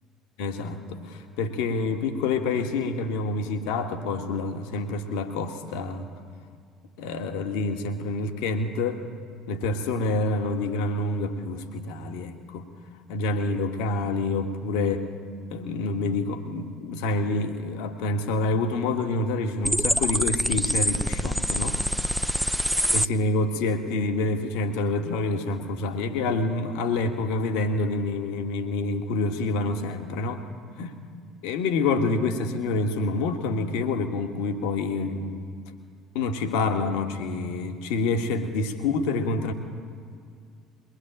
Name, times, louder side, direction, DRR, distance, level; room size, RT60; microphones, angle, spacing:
voice 1, 0.4-6.1 7.0-9.0 9.5-12.7 13.1-15.1 15.5-21.8 22.9-30.4 30.8-31.0 31.4-35.4 36.1-39.5, left 3 dB, 60° left, 7 dB, 1.5 m, -27 dB
sound 1, 19.6-23.1, equal, ahead, 0.6 m, -25 dB
22.5 x 19.5 x 8.8 m, 2.2 s
figure-of-eight pair, 60°, 0 cm